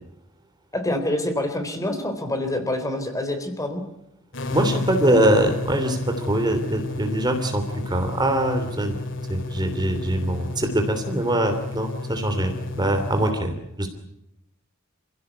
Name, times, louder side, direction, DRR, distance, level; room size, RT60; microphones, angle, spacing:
voice 1, 0.7-3.8, left 1 dB, 15° left, 7 dB, 4.0 m, -26 dB
sound 1, 4.3-13.3, left 2 dB, 60° left, 2.6 m, -31 dB
voice 2, 4.5-9.0 9.3-13.9, right 1 dB, 20° right, 6 dB, 3.1 m, -23 dB
28.0 x 17.0 x 9.5 m, 0.82 s
head